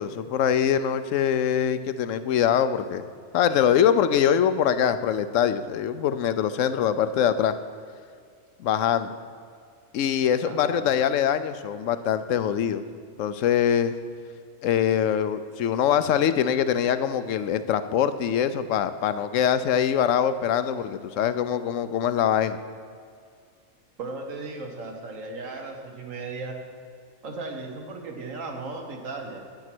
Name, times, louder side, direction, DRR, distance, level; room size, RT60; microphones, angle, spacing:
voice 1, 0.0-3.0 3.3-7.6 8.6-9.1 9.9-12.9 13.2-13.9 14.6-22.6, left 9 dB, 80° left, 12 dB, 1.0 m, -23 dB
voice 2, 10.5-10.8 24.0-26.6 27.2-29.4, right 3 dB, 85° right, 3 dB, 1.7 m, -36 dB
10.5 x 9.7 x 6.1 m, 2.2 s
omnidirectional pair, 1.3 m